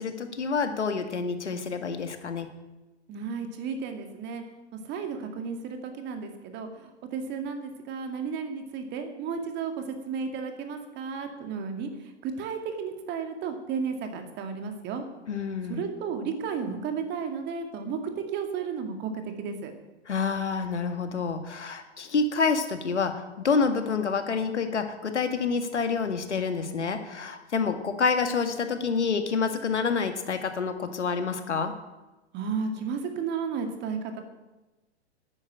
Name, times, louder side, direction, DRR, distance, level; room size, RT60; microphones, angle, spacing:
voice 1, 0.0-2.5 15.3-15.8 20.1-31.7, left 5 dB, 75° left, 7 dB, 1.9 m, -28 dB
voice 2, 3.1-4.4 4.7-15.0 15.7-19.7 32.3-34.2, right 5 dB, 30° right, 5 dB, 2.2 m, -33 dB
11.5 x 9.7 x 8.8 m, 1.1 s
figure-of-eight pair, 110°, 35 cm